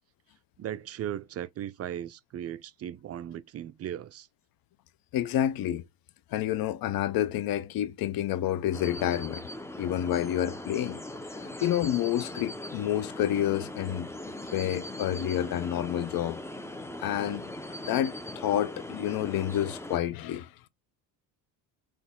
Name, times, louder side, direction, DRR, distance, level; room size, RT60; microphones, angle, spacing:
voice 1, 0.6-4.3, right 10 dB, 30° right, 0.4 m, -37 dB
voice 2, 5.1-5.8 6.3-9.4 9.8-11.0 11.3-14.1 14.5-16.4 17.0-17.5 17.8-20.7, left 11 dB, 45° left, 0.7 m, -29 dB
sound 1, 8.7-20.0, left 1 dB, 5° left, 0.7 m, -40 dB
4.0 x 3.1 x 3.7 m
hypercardioid pair, 65°, 49 cm